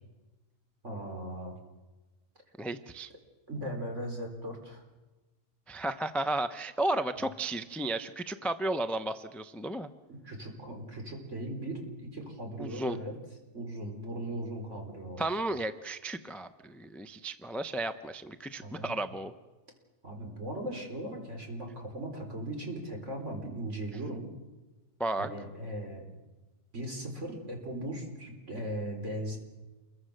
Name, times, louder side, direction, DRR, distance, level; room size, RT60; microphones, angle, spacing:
voice 1, 0.8-1.6 3.5-4.8 10.2-13.1 13.5-15.2 18.6-18.9 20.0-24.3 25.2-26.0 26.7-29.4, right 1 dB, 50° right, 2 dB, 4.6 m, -38 dB
voice 2, 2.6-3.1 5.7-9.9 12.6-13.0 15.2-19.3 25.0-25.3, right 2 dB, ahead, 9 dB, 0.5 m, -33 dB
28.0 x 22.5 x 6.6 m, 1.2 s
omnidirectional pair, 1.6 m